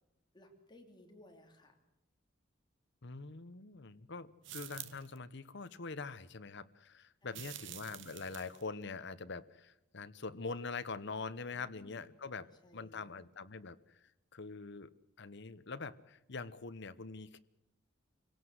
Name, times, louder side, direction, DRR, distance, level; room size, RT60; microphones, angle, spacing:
voice 1, 0.3-1.8 7.2-8.0 11.5-13.2, left 1 dB, 20° left, 3 dB, 3.1 m, -61 dB
voice 2, 3.0-14.9 15.2-17.4, left 4 dB, 60° left, 12 dB, 1.0 m, -44 dB
sound 1, 4.4-5.2 7.3-8.7, right 11 dB, 65° right, 1.1 m, -48 dB
26.5 x 17.5 x 7.9 m, 0.88 s
head